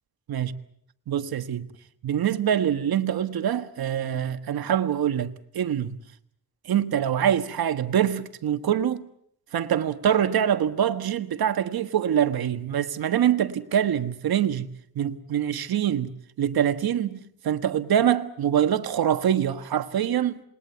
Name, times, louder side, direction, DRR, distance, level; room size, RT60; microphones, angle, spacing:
voice 1, 1.1-1.7 2.0-6.0 6.6-9.1 9.5-14.7 14.9-20.4, right 9 dB, 75° right, 1.5 m, -24 dB
28.0 x 21.0 x 8.0 m
wide cardioid pair, 130°, 37 cm